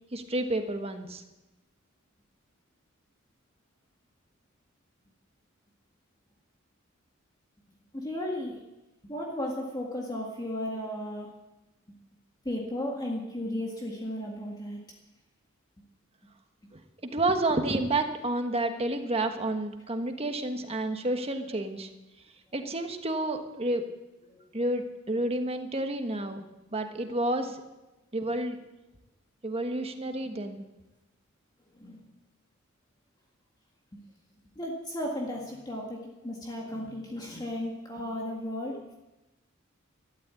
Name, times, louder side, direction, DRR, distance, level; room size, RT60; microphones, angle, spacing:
voice 1, 0.1-1.2 17.0-21.9 22.5-23.8 24.5-26.4 26.7-27.6 28.1-28.6 29.4-30.6, right 2 dB, 30° right, 6 dB, 1.4 m, -30 dB
voice 2, 7.9-8.6 9.0-11.3 12.4-14.8 24.3-24.4 31.8-32.0 33.9-34.0 34.5-39.0, left 1 dB, 20° left, -2 dB, 1.9 m, -35 dB
13.0 x 12.0 x 8.4 m, 1.0 s
head